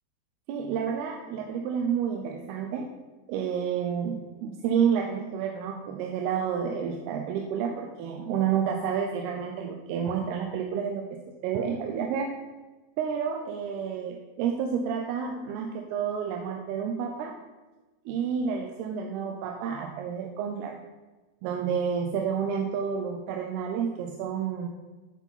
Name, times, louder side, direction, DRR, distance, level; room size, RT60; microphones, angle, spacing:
voice 1, 0.5-2.9 3.3-11.1 11.4-12.4 13.0-17.4 18.1-20.8 21.4-24.7, right 7 dB, 85° right, 2 dB, 2.7 m, -30 dB
10.5 x 4.9 x 5.5 m, 1.2 s
omnidirectional pair, 4.5 m